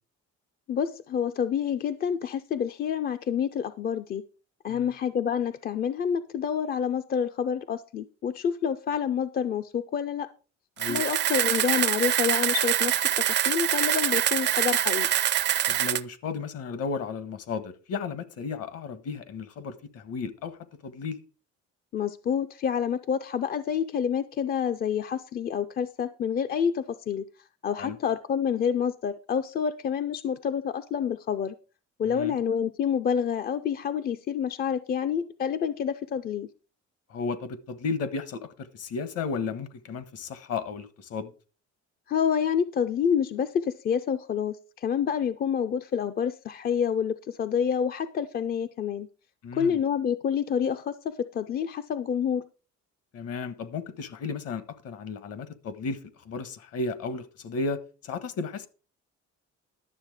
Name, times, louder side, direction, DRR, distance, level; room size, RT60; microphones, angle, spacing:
voice 1, 0.7-4.2 4.6-10.3 10.9-15.1 21.9-27.3 27.6-31.5 32.0-36.5 42.1-49.1 49.5-52.5, left 7 dB, 35° left, 0.4 m, -28 dB
Camera, 10.8-16.0, right 12 dB, 40° right, 0.4 m, -25 dB
voice 2, 15.7-20.6 20.8-21.2 27.8-28.0 32.0-32.3 37.1-38.5 38.7-41.3 49.4-49.8 53.1-56.0 56.2-58.7, left 4 dB, 55° left, 1.3 m, -34 dB
11.5 x 7.2 x 4.8 m
cardioid pair, 170°, 29 cm